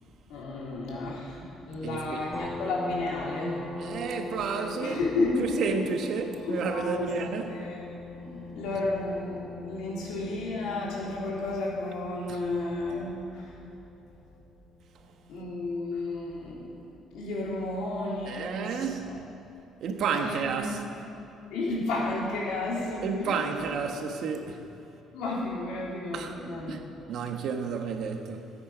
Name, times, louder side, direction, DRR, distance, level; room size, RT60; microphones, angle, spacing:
voice 1, 0.3-4.0 4.8-5.7 6.4-7.1 7.4-7.8 8.1-13.6 15.3-16.7 17.1-19.2 20.2-20.7 20.9-21.1 21.5-23.6 25.1-26.9, left 2 dB, 85° left, 3.5 m, -32 dB
voice 2, 1.8-2.2 3.8-5.0 5.6-7.7 12.3-12.4 18.3-19.1 19.8-20.8 23.0-24.7 26.1-26.4 26.7-26.8 27.1-28.5, right 5 dB, 65° right, 1.2 m, -31 dB
sound 1, 2.3-15.6, left 2 dB, 15° left, 1.7 m, -42 dB
16.5 x 8.9 x 5.1 m
cardioid pair, 105°, 0 cm